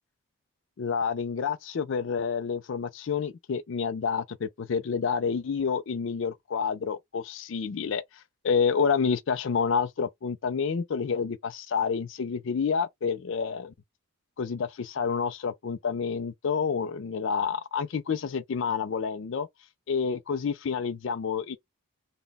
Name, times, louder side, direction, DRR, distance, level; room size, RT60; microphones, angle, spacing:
voice 1, 0.8-13.7 14.4-19.5 19.9-21.6, left 6 dB, 60° left, 0.4 m, -29 dB
3.9 x 2.2 x 3.4 m
head